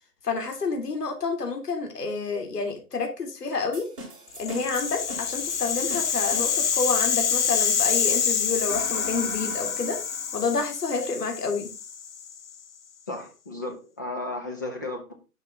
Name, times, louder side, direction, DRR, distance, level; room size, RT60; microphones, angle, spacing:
voice 1, 0.2-3.9 4.4-10.0 10.3-11.7, left 4 dB, 80° left, 3 dB, 3.4 m, -29 dB
sound 1, 3.7-7.2, right 1 dB, 35° right, 5.6 m, -42 dB
Rattle (instrument), 4.3-12.5, left 7 dB, 45° left, 1.3 m, -27 dB
sound 2, 8.7-11.3, left 3 dB, 65° left, 4.4 m, -40 dB
voice 2, 13.1-15.1, left 2 dB, 10° left, 2 dB, 0.7 m, -34 dB
10.5 x 5.9 x 3.9 m, 0.31 s
hypercardioid pair, 165°, 46 cm